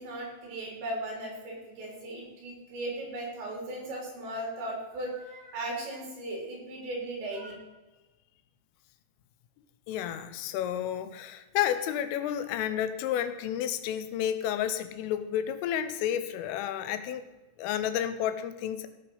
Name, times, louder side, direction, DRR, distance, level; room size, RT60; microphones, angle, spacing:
voice 1, 0.0-7.5, right 1 dB, 65° right, -1 dB, 5.8 m, -37 dB
voice 2, 9.9-17.2 17.6-18.9, left 10 dB, 90° left, 10 dB, 3.4 m, -31 dB
16.5 x 5.7 x 5.5 m, 1.1 s
omnidirectional pair, 5.7 m